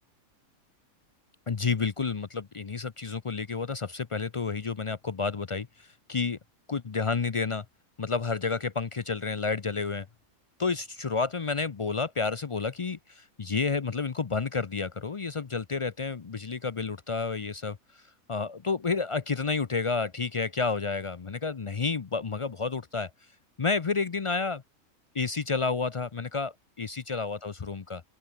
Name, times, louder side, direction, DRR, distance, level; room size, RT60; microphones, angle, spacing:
voice 1, 1.5-6.4 6.7-7.7 8.0-10.1 10.6-18.0 18.3-23.1 23.6-24.6 25.1-28.0, left 4 dB, 55° left, 0.3 m, -30 dB
open air
omnidirectional pair, 1.5 m